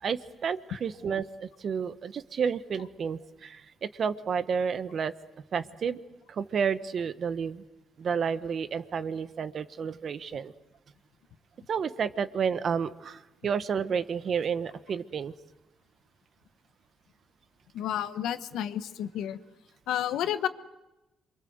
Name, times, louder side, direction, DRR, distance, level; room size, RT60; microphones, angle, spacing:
voice 1, 0.0-5.1 5.5-6.0 6.3-7.6 8.0-10.5 11.7-15.3, right 6 dB, 55° right, 12 dB, 1.3 m, -31 dB
voice 2, 17.7-19.4 19.9-20.5, left 10 dB, 85° left, 10 dB, 1.2 m, -30 dB
27.5 x 24.0 x 8.0 m, 0.99 s
cardioid pair, 90°, 0 cm